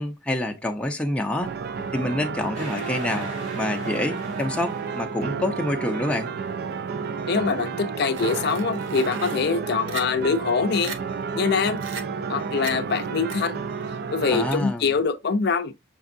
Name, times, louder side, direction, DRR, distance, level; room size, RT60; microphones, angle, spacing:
voice 1, 0.0-1.6 1.9-3.3 3.5-6.3 14.3-14.9, left 1 dB, 5° left, 0.5 m, -27 dB
sound 1, 1.4-14.6, right 5 dB, 55° right, 0.3 m, -31 dB
sound 2, 2.5-5.1, equal, 70° right, 2.5 m, -38 dB
voice 2, 7.3-11.0 11.3-11.8 12.3-13.6 14.1-15.7, left 5 dB, 55° left, 0.4 m, -24 dB
sound 3, 8.1-9.4 9.9-10.0 10.5-10.6 10.8-11.0 11.8-12.0 12.6-12.7 13.3-13.4, right 4 dB, 85° right, 0.7 m, -35 dB
6.0 x 3.4 x 2.6 m
head